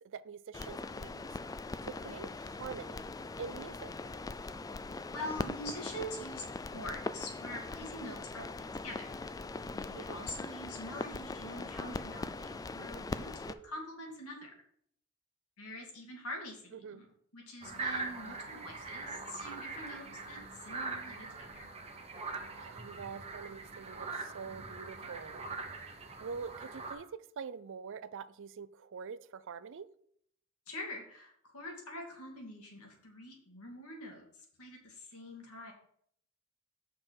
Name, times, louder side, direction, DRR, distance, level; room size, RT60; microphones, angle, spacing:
voice 1, 0.0-1.4 1.8-3.9 9.9-10.2 16.7-17.0 22.6-25.4 26.2-29.9, right 6 dB, 60° right, 0.4 m, -45 dB
sound 1, 0.5-13.5, left 3 dB, 15° left, 0.3 m, -41 dB
voice 2, 5.1-14.5 15.6-17.1 17.3-21.7 30.7-34.2 34.6-35.7, left 1 dB, 85° left, 2.4 m, -45 dB
sound 2, 17.6-26.9, right 3 dB, 30° right, 1.0 m, -42 dB
7.5 x 6.2 x 4.6 m
head